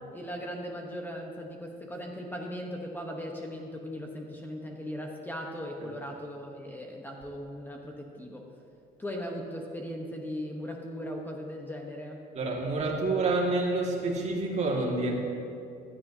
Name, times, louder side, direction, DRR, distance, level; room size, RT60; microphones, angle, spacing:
voice 1, 0.1-8.5 9.0-12.2, equal, 10° left, 1 dB, 1.0 m, -38 dB
voice 2, 12.3-15.1, right 2 dB, 40° right, 0 dB, 1.8 m, -28 dB
15.5 x 11.5 x 2.7 m, 2.5 s
cardioid pair, 110°, 17 cm